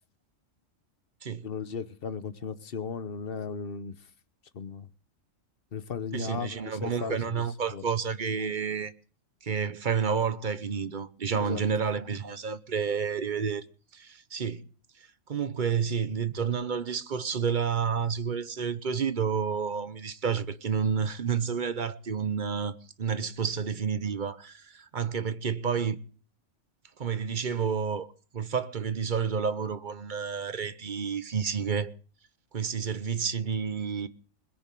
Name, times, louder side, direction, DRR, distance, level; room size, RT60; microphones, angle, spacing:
voice 1, 1.4-3.9 4.5-4.9 5.7-7.4 7.7-7.8 11.3-11.6, left 6 dB, 50° left, 1.1 m, -36 dB
voice 2, 6.1-8.9 9.4-13.6 13.9-14.7 15.3-26.0 27.0-28.1 28.3-31.9 32.5-34.1, right 6 dB, 45° right, 0.9 m, -30 dB
21.0 x 7.1 x 7.6 m
omnidirectional pair, 1.3 m